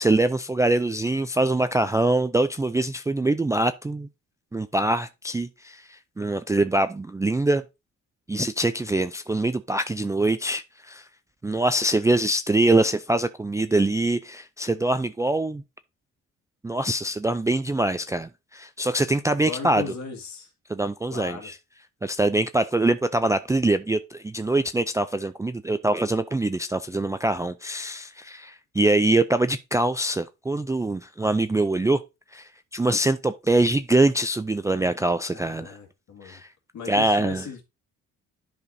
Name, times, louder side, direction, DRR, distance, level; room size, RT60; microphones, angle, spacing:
voice 1, 0.0-4.1 4.5-7.6 8.3-11.0 11.4-15.6 16.6-19.8 20.7-21.5 22.0-32.0 32.3-35.8 36.2-36.5 36.9-37.4, right 2 dB, 10° right, 0.3 m, -24 dB
voice 2, 19.4-20.5 21.1-21.5 35.3-36.4 36.7-37.6, left 5 dB, 65° left, 2.1 m, -37 dB
10.5 x 5.0 x 2.7 m
cardioid pair, 90°, 30 cm